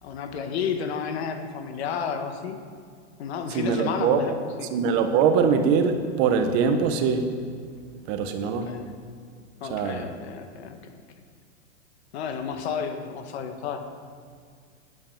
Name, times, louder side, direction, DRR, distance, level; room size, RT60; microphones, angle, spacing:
voice 1, 0.0-2.6 3.2-4.7 8.4-8.9 9.6-10.8 12.1-13.9, left 6 dB, 65° left, 6 dB, 1.7 m, -32 dB
voice 2, 3.5-4.2 4.7-7.3 8.1-8.7 9.7-10.1, right 6 dB, 40° right, 7 dB, 1.2 m, -23 dB
9.8 x 8.8 x 9.3 m, 2.2 s
hypercardioid pair, 140°, 35 cm